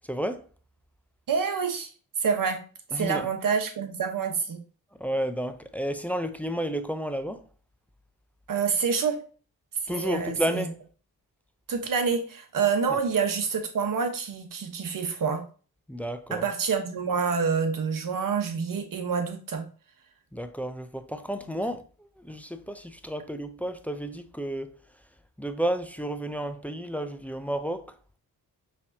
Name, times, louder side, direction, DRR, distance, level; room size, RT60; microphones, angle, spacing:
voice 1, 0.1-0.5 2.9-3.3 5.0-7.4 9.9-10.8 12.9-13.0 15.9-16.5 20.3-24.8 25.4-27.9, equal, 5° left, 0.5 m, -31 dB
voice 2, 1.3-1.9 2.2-2.6 2.9-4.6 8.5-9.2 9.9-10.7 11.7-15.4 16.3-19.6, right 6 dB, 60° right, 1.2 m, -27 dB
5.2 x 3.5 x 2.8 m
cardioid pair, 65°, 37 cm